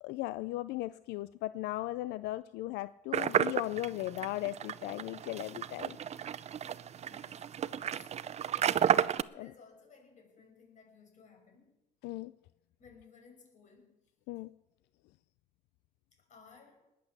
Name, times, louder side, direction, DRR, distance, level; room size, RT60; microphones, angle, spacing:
voice 1, 0.0-6.3 9.3-9.5 12.0-12.3 14.3-14.5, left 17 dB, 90° left, 15 dB, 0.4 m, -37 dB
sound 1, 3.1-9.2, right 9 dB, 40° right, 0.5 m, -32 dB
voice 2, 7.1-8.3 9.3-11.7 12.8-14.0 16.2-16.9, left 5 dB, 45° left, 3 dB, 5.6 m, -59 dB
20.0 x 8.5 x 7.3 m, 0.92 s
cardioid pair, 110°, 17 cm